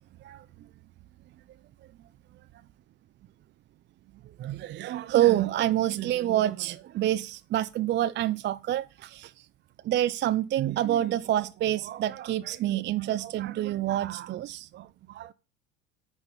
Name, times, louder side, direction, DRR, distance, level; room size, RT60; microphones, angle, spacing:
voice 1, 4.4-9.3 9.8-15.3, right 13 dB, 30° right, 0.4 m, -27 dB
9.7 x 4.4 x 7.2 m
hypercardioid pair, 80°, 38 cm